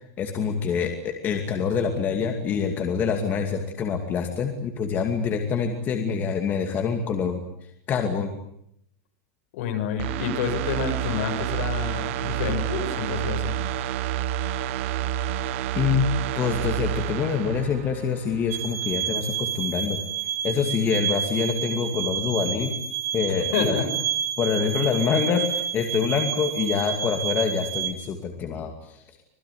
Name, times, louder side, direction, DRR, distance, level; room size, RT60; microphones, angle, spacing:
voice 1, 0.2-7.4 7.9-8.3 15.7-20.0 20.4-22.7 23.1-23.8 24.4-29.0, left 6 dB, 25° left, 4 dB, 2.5 m, -26 dB
voice 2, 9.5-13.5 23.3-23.9, left 7 dB, 60° left, 5 dB, 6.9 m, -28 dB
sound 1, 10.0-18.7 19.0-19.1, right 11 dB, 55° right, 1.1 m, -29 dB
sound 2, 18.5-27.9, right 10 dB, 75° right, 5.1 m, -29 dB
26.0 x 20.5 x 9.4 m, 0.74 s
supercardioid pair, 170°, 8 cm